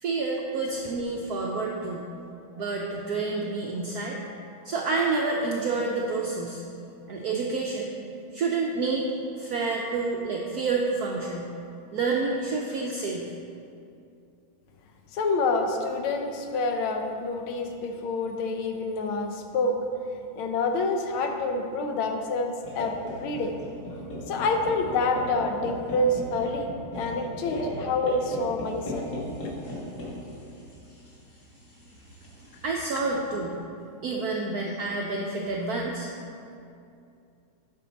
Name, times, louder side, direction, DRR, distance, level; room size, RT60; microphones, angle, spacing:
voice 1, 0.0-2.1 2.5-4.2 4.6-6.6 7.1-7.9 8.3-11.5 11.9-13.3 32.6-33.5 34.0-36.1, right 3 dB, 80° right, -1 dB, 0.8 m, -28 dB
voice 2, 15.1-19.8 20.4-23.6 24.3-26.7 26.9-29.0, left 3 dB, 90° left, 4 dB, 1.6 m, -27 dB
sound 1, 22.6-33.1, equal, 45° left, 2.0 m, -38 dB
9.0 x 5.6 x 4.1 m, 2.6 s
omnidirectional pair, 2.3 m